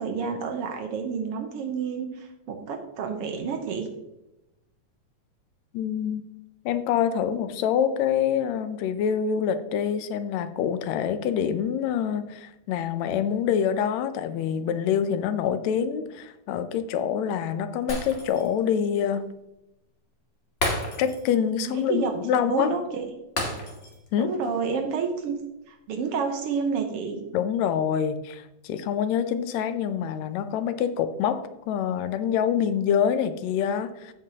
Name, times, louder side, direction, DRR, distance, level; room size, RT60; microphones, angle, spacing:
voice 1, 0.0-3.9 21.9-23.1 24.2-25.4 25.7-27.2, right 5 dB, 65° right, 4 dB, 1.7 m, -29 dB
voice 2, 5.7-6.2 6.7-19.3 20.7-22.7 24.1-24.3 27.3-34.1, left 8 dB, 75° left, 11 dB, 1.8 m, -26 dB
Shatter, 17.9-18.6 18.9-19.1 20.6-21.4 21.7-21.8 23.4-24.1 24.4-24.6, left 1 dB, 30° left, 1.2 m, -31 dB
15.0 x 5.4 x 2.9 m, 0.92 s
omnidirectional pair, 3.4 m